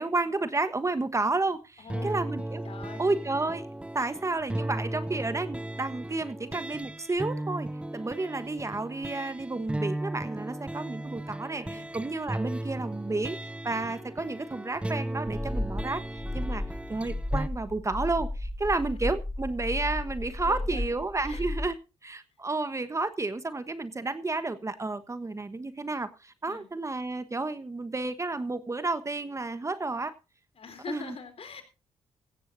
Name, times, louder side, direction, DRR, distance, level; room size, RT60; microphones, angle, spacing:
voice 1, 0.0-2.6 3.0-3.7 3.9-16.6 16.9-21.8 22.0-30.1 30.9-31.1, right 3 dB, 25° right, 12 dB, 1.2 m, -31 dB
voice 2, 1.8-2.3 2.6-3.0 11.7-11.8 18.7-19.0 20.5-20.9 21.2-21.4 26.5-26.7 30.6-31.6, left 5 dB, 55° left, 9 dB, 3.7 m, -43 dB
sound 1, 1.9-17.5, right 1 dB, 10° right, 0.7 m, -36 dB
sound 2, 15.3-21.7, left 1 dB, 5° left, 2.8 m, -34 dB
16.0 x 15.5 x 2.7 m, 0.30 s
supercardioid pair, 60°, 12 cm